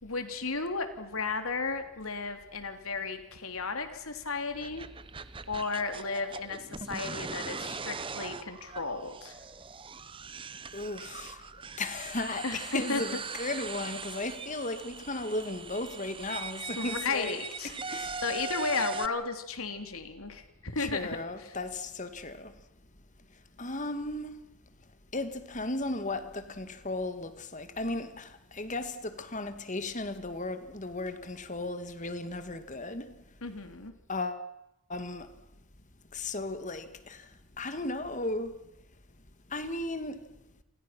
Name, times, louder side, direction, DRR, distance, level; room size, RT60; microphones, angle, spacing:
voice 1, 0.0-4.9 5.5-9.4 12.4-13.0 16.8-21.5 33.4-33.9, left 4 dB, 75° left, 3.2 m, -34 dB
sound 1, 4.5-19.1, right 5 dB, 25° right, 0.8 m, -41 dB
voice 2, 10.7-11.4 11.8-18.2 20.8-22.5 23.6-24.3 25.1-33.1 34.1-34.5 34.9-35.3 36.1-37.3 37.6-38.5 39.5-40.3, left 2 dB, 35° left, 1.9 m, -35 dB
29.0 x 26.5 x 6.1 m
head